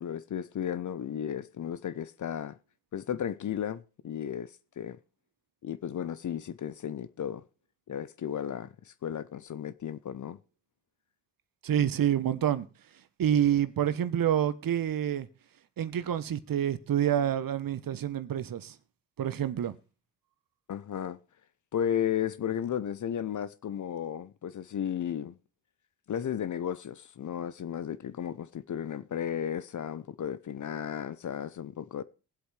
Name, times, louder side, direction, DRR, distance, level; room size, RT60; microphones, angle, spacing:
voice 1, 0.0-2.6 2.9-5.0 5.6-7.4 7.9-10.4 20.7-21.2 21.7-25.4 26.1-32.0, left 9 dB, 40° left, 0.8 m, -34 dB
voice 2, 11.6-12.7 13.2-15.3 15.8-18.8 19.2-19.7, right 10 dB, 45° right, 1.1 m, -27 dB
21.0 x 8.0 x 3.3 m
hypercardioid pair, 50°, 46 cm